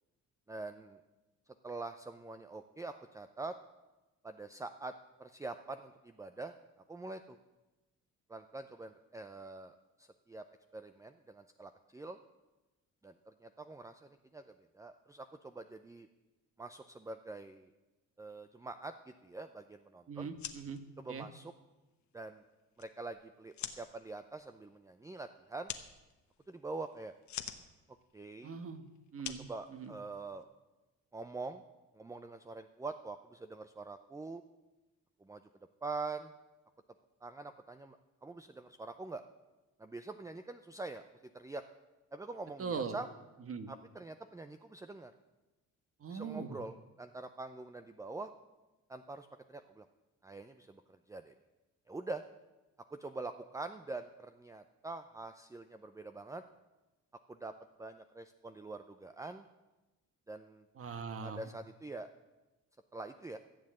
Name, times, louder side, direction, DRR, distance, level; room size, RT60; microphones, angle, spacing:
voice 1, 0.5-1.0 1.6-3.5 4.2-4.9 5.2-6.5 6.9-7.4 8.3-10.4 10.7-12.2 13.0-14.4 14.7-16.1 16.6-17.7 18.2-20.3 21.0-21.5 22.1-22.4 22.8-25.7 26.5-27.1 28.1-28.5 29.4-30.5 31.1-31.6 31.9-34.4 35.2-35.4 35.8-36.3 37.2-39.2 39.8-41.0 41.3-41.6 42.1-43.1 43.7-45.1 46.1-48.3 48.9-49.9 50.2-51.3 51.9-52.2 52.9-56.4 57.3-57.5 57.8-59.4 60.3-60.6 61.2-62.1 62.9-63.4, right 3 dB, 10° right, 8 dB, 0.5 m, -45 dB
voice 2, 20.1-20.8 21.1-21.3 28.4-28.8 29.1-29.9 42.6-43.0 43.5-43.7 46.0-46.6 60.8-61.5, right 5 dB, 50° right, 9 dB, 1.4 m, -41 dB
sound 1, 20.2-30.4, left 9 dB, 70° left, 1.1 m, -49 dB
14.5 x 7.4 x 7.8 m, 1.1 s
cardioid pair, 90°, 30 cm